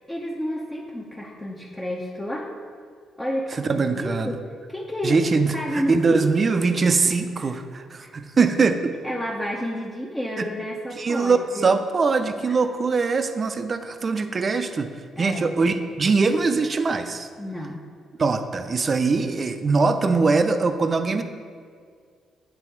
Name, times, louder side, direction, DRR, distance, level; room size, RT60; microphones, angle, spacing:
voice 1, 0.1-2.5 3.2-4.4 4.7-6.2 7.0-7.1 7.4-7.5 8.0-8.1 9.0-11.7 12.5-12.6 15.2-15.6 17.4-17.9, equal, 10° left, -3 dB, 0.6 m, -31 dB
voice 2, 3.5-4.4 5.0-8.9 10.4-10.5 11.0-14.9 15.2-17.3 18.2-21.2, right 4 dB, 40° right, 8 dB, 0.5 m, -22 dB
8.9 x 3.4 x 4.5 m, 2.1 s
cardioid pair, 90°, 0 cm